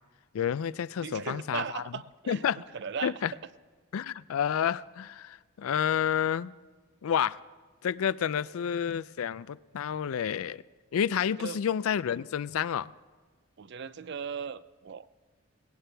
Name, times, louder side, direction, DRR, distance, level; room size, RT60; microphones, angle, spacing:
voice 1, 0.3-1.8 2.3-2.6 3.0-3.3 3.9-6.5 7.0-7.4 7.8-10.6 10.9-12.9, left 8 dB, 80° left, 0.4 m, -29 dB
voice 2, 1.0-2.4 2.7-3.1 9.9-10.0 11.4-11.6 13.6-15.1, right 6 dB, 50° right, 0.4 m, -37 dB
18.5 x 18.0 x 3.4 m
head